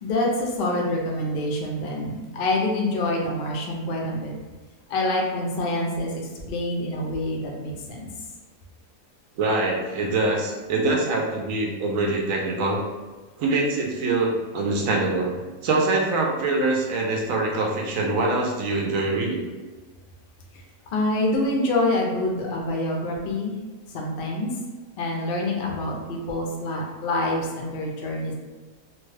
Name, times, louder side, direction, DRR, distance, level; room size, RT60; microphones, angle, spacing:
voice 1, 0.0-4.3 4.9-8.1 20.9-23.6 23.9-24.5 25.0-28.3, left 1 dB, 60° left, -1 dB, 0.6 m, -26 dB
voice 2, 9.4-12.8 13.4-19.5, right 2 dB, 65° right, 0 dB, 0.9 m, -24 dB
3.0 x 2.2 x 3.2 m, 1.3 s
omnidirectional pair, 1.7 m